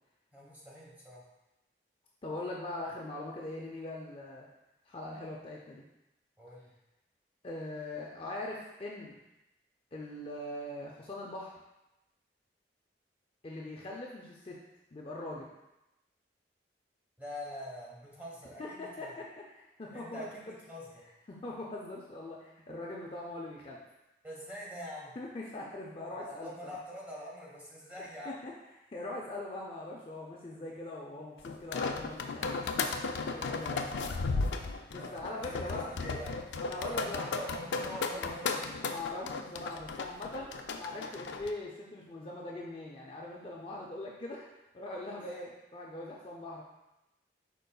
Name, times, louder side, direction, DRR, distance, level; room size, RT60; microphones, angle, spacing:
voice 1, 0.3-1.2 6.4-6.7 17.2-19.1 19.9-21.0 24.2-25.2 26.1-28.4 33.7-34.5 34.9-36.3 36.9-38.8 45.2-45.5, equal, 10° right, -5 dB, 1.2 m, -45 dB
voice 2, 2.2-4.5 4.9-5.8 7.4-9.2 9.9-11.5 13.4-14.6 14.9-15.5 18.6-19.2 19.5-20.4 21.3-23.8 25.2-26.8 28.4-28.5 28.9-33.0 33.3-33.8 34.9-35.9 36.6-37.3 38.1-38.3 38.8-44.5 44.7-46.6, left 2 dB, 30° left, -3 dB, 0.5 m, -41 dB
sound 1, 31.4-41.5, left 4 dB, 90° left, 0.4 m, -35 dB
5.2 x 4.4 x 2.3 m, 0.94 s
head